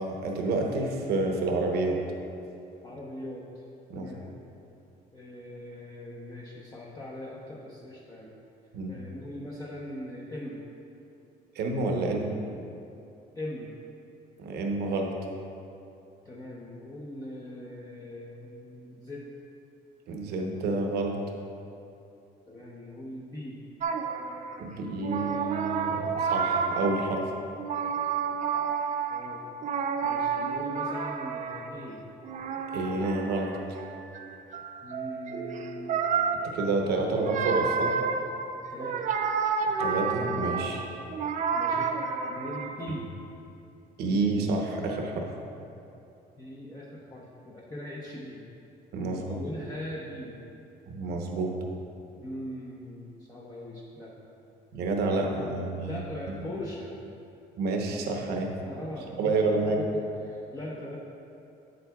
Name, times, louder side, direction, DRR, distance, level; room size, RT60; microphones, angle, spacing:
voice 1, 0.0-2.0 3.9-4.1 8.7-8.9 11.5-12.3 14.4-15.1 20.1-21.2 24.6-27.2 32.7-33.6 36.4-38.0 39.8-40.8 44.0-45.3 48.9-49.4 50.9-51.5 54.7-56.0 56.3-56.4 57.6-58.5 59.2-59.8, right 3 dB, 70° right, 2 dB, 0.9 m, -29 dB
voice 2, 2.8-3.6 3.9-4.3 5.1-8.3 8.9-10.6 13.3-13.8 16.2-19.3 22.5-23.6 29.1-29.4 30.0-32.0 34.8-36.0 38.7-39.1 41.5-42.0 42.3-43.1 46.4-48.5 49.1-50.4 52.2-54.2 55.1-57.0 58.6-59.3 59.8-61.0, left 1 dB, 20° left, -4 dB, 0.7 m, -40 dB
sound 1, 23.8-24.7 25.0-27.3 27.6-31.8 32.2-42.9, right 5 dB, 45° right, 0.5 m, -30 dB
7.9 x 7.7 x 2.3 m, 2.7 s
cardioid pair, 110°, 17 cm